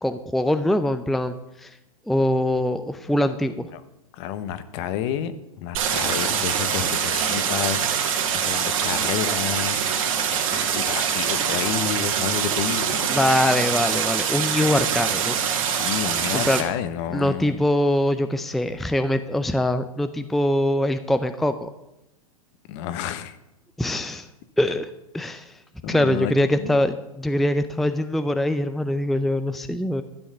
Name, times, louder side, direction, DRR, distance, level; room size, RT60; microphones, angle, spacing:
voice 1, 0.0-1.7 2.1-3.7 13.1-15.4 16.3-16.6 17.1-21.7 23.8-24.3 24.6-24.9 25.1-25.5 25.9-30.0, left 1 dB, ahead, 10 dB, 0.5 m, -23 dB
voice 2, 4.1-13.2 15.6-17.6 22.7-23.4 25.8-26.8, left 10 dB, 50° left, 12 dB, 1.1 m, -30 dB
Stream, 5.7-16.6, right 8 dB, 65° right, 2.3 m, -24 dB
12.5 x 6.3 x 8.0 m, 0.89 s
hypercardioid pair, 120°, 19 cm